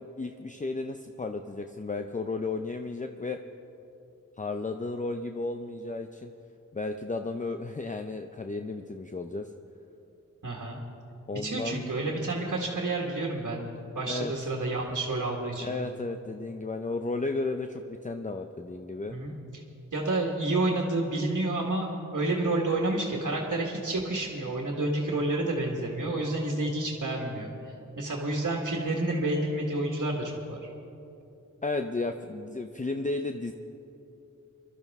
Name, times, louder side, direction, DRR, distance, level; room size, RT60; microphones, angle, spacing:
voice 1, 0.0-3.4 4.4-6.3 6.7-9.5 11.3-11.9 14.1-14.3 15.6-19.2 31.6-33.5, left 3 dB, 25° left, 6 dB, 0.6 m, -33 dB
voice 2, 10.4-10.8 11.3-15.8 19.1-19.6 19.9-30.6, right 2 dB, 70° right, -1 dB, 1.7 m, -30 dB
23.0 x 13.0 x 3.6 m, 2.9 s
wide cardioid pair, 55°, 31 cm